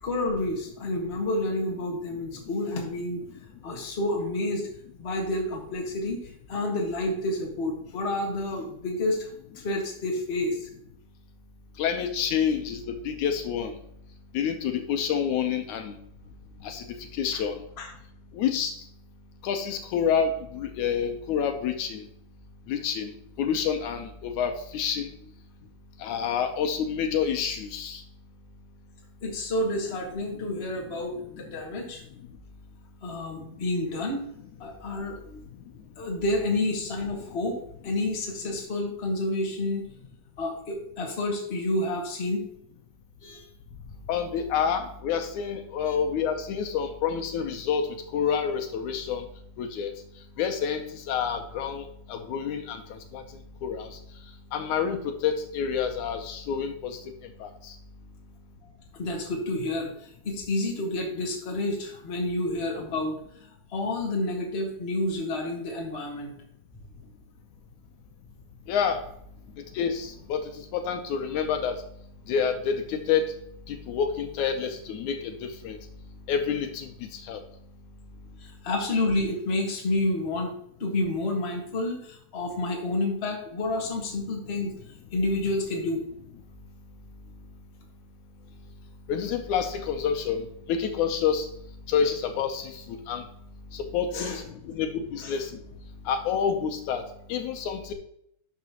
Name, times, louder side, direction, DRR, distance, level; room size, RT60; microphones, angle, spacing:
voice 1, 0.0-3.2 3.6-4.7 5.0-6.2 6.5-9.3 9.5-10.7 17.3-17.4 17.8-17.9 29.2-32.0 33.0-34.3 34.6-35.4 36.0-39.9 40.4-42.4 43.2-43.4 45.8-46.0 58.9-63.1 63.7-66.3 78.4-80.5 80.8-84.7 85.1-86.0 94.1-94.4 95.2-95.3, left 2 dB, 25° left, 0 dB, 1.6 m, -29 dB
voice 2, 11.8-13.7 14.3-16.0 16.6-16.8 17.1-17.6 18.3-18.7 19.4-22.0 22.7-23.1 23.4-25.1 26.0-28.0 44.1-47.9 48.1-49.2 49.6-49.9 50.4-53.2 53.6-53.9 54.5-55.0 55.2-57.0 57.4-57.5 68.7-69.0 69.8-71.8 72.3-73.3 73.7-75.8 76.3-77.4 89.1-91.5 91.9-93.2 93.7-95.5 96.1-97.0 97.3-97.9, left 7 dB, 80° left, 6 dB, 2.3 m, -28 dB
11.5 x 6.1 x 3.0 m, 0.71 s
omnidirectional pair, 3.5 m